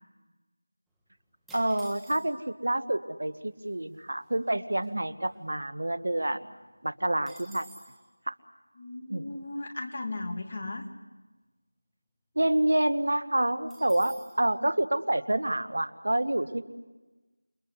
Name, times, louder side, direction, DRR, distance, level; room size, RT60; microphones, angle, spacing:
sound 1, 1.5-2.6 3.4-3.5 3.6-4.0 4.4-5.9 6.2-6.3 6.6-8.0 13.7-14.4, right 2 dB, ahead, 1.5 m, -53 dB
voice 1, 1.5-6.5 6.8-7.7 8.3-8.4 9.1-9.3 12.3-16.6, right 1 dB, 60° right, 12 dB, 1.6 m, -28 dB
voice 2, 8.8-10.9, left 2 dB, 30° left, 4 dB, 2.7 m, -36 dB
28.5 x 23.5 x 8.2 m, 1.2 s
figure-of-eight pair, 175°, 0 cm